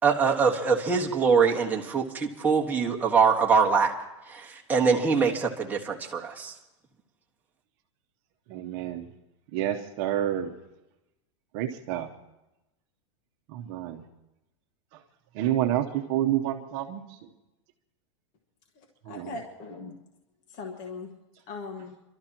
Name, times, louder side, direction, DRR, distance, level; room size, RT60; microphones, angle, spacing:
voice 1, 0.0-3.9 4.3-6.5, right 5 dB, 10° right, -2 dB, 1.6 m, -23 dB
voice 2, 8.5-9.1 9.5-10.5 11.5-12.1 13.5-14.0 15.3-17.0 19.1-19.3, right 12 dB, 50° right, 5 dB, 1.0 m, -28 dB
voice 3, 18.8-20.0 20.5-21.1 21.5-22.0, left 4 dB, 45° left, 1 dB, 1.7 m, -40 dB
29.5 x 12.5 x 3.0 m, 0.97 s
supercardioid pair, 130°, 16 cm